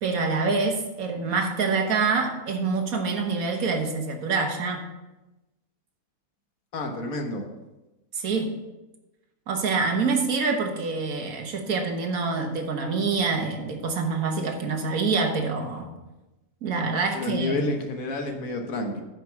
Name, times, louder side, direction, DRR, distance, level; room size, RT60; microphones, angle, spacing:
voice 1, 0.0-4.8 8.2-8.5 9.5-15.9 16.6-17.6, right 4 dB, 85° right, 4 dB, 1.7 m, -26 dB
voice 2, 6.7-7.4 17.1-19.0, left 2 dB, 80° left, 3 dB, 1.7 m, -29 dB
9.6 x 5.4 x 5.8 m, 1.0 s
omnidirectional pair, 1.5 m